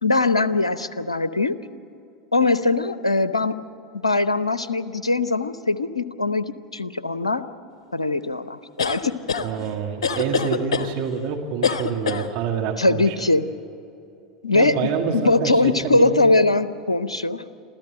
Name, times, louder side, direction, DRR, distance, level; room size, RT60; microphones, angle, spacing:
voice 1, 0.0-1.6 2.3-3.5 4.0-7.5 7.9-9.2 12.8-13.5 14.4-14.8 15.1-17.4, left 2 dB, 90° left, 13 dB, 0.8 m, -21 dB
sound 1, 8.8-9.5 10.0-10.9 11.6-12.3, left 5 dB, 70° left, 1.2 m, -24 dB
voice 2, 9.4-13.2 14.5-16.2, right 6 dB, 55° right, 2 dB, 2.3 m, -27 dB
28.0 x 13.5 x 7.6 m, 2.7 s
figure-of-eight pair, 85°, 3 cm